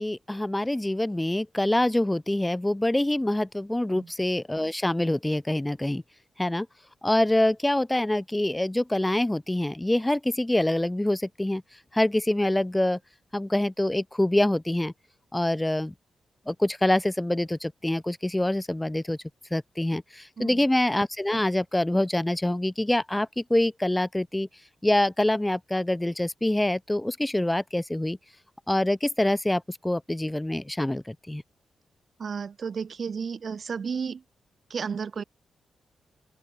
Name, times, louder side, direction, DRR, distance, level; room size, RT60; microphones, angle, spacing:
voice 1, 0.0-6.0 6.4-6.7 7.0-11.6 11.9-13.0 13.3-14.9 15.3-15.9 16.5-19.2 19.5-24.5 24.8-28.2 28.7-31.4, left 1 dB, 15° left, 0.8 m, -25 dB
voice 2, 32.2-34.2 34.7-35.2, right 6 dB, 60° right, 1.1 m, -32 dB
open air
supercardioid pair, 55°, 0 cm